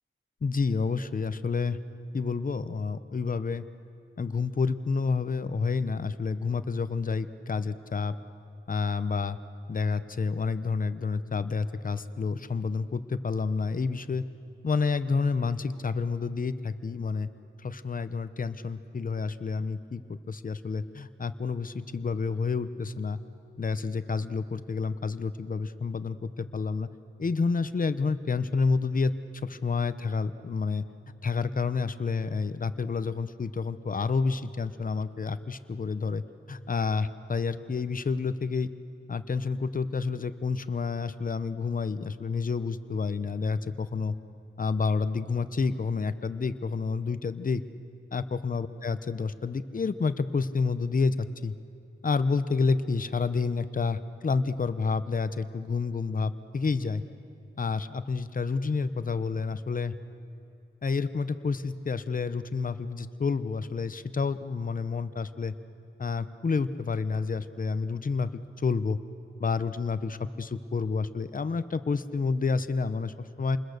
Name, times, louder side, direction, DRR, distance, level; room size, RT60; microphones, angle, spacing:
voice 1, 0.4-1.8 2.1-3.6 4.2-8.1 8.7-9.4 9.7-14.2 14.6-17.3 17.6-23.2 23.6-26.9 27.2-30.8 31.2-36.2 36.5-38.7 39.1-44.1 44.6-47.6 48.1-51.5 52.0-57.0 57.6-59.9 60.8-65.5 66.0-69.0 69.4-73.6, left 4 dB, 40° left, 12 dB, 0.7 m, -29 dB
27.5 x 21.0 x 6.6 m, 2.7 s
wide cardioid pair, 110°, 21 cm